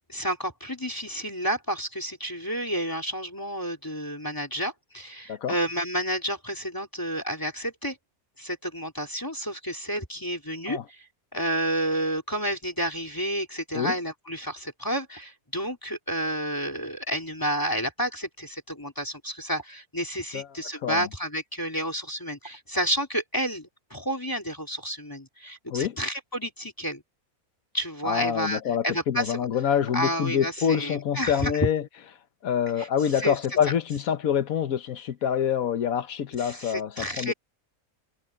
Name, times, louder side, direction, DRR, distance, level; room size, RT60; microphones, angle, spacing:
voice 1, 0.1-8.0 8.4-11.1 11.3-27.0 27.7-29.5 29.9-31.7 32.8-33.4 36.4-37.3, equal, 15° left, 3.2 m, -30 dB
voice 2, 28.0-31.8 32.4-37.3, left 8 dB, 70° left, 1.4 m, -26 dB
omnidirectional pair, 1.6 m